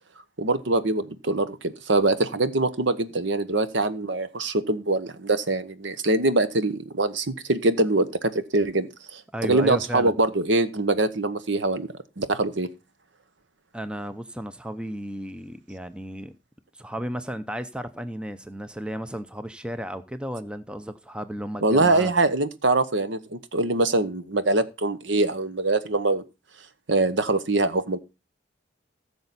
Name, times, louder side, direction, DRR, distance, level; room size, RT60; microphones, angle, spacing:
voice 1, 0.4-11.9 12.2-12.7 21.6-26.2 26.9-28.0, right 2 dB, 65° right, 1.0 m, -23 dB
voice 2, 9.3-10.2 13.7-16.3 16.7-22.1, equal, 5° right, 0.5 m, -34 dB
15.0 x 6.8 x 4.1 m
head